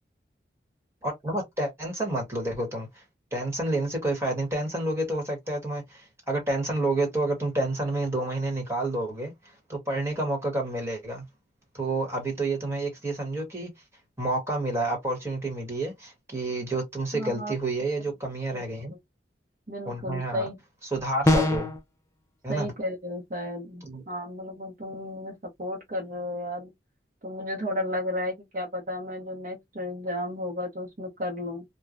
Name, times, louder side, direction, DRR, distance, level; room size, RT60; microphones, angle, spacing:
voice 1, 1.0-3.0 3.3-9.3 9.7-11.2 11.7-13.7 14.2-18.9 19.8-20.5 20.9-21.7 22.4-22.7 23.8-24.0, right 2 dB, 15° right, 1.2 m, -29 dB
voice 2, 17.1-17.5 18.5-18.6 19.7-20.6 21.4-21.5 22.5-26.7 27.2-31.6, left 1 dB, 45° right, 0.7 m, -33 dB
sound 1, 21.3-21.8, left 1 dB, 15° left, 0.5 m, -21 dB
3.0 x 2.2 x 2.4 m
head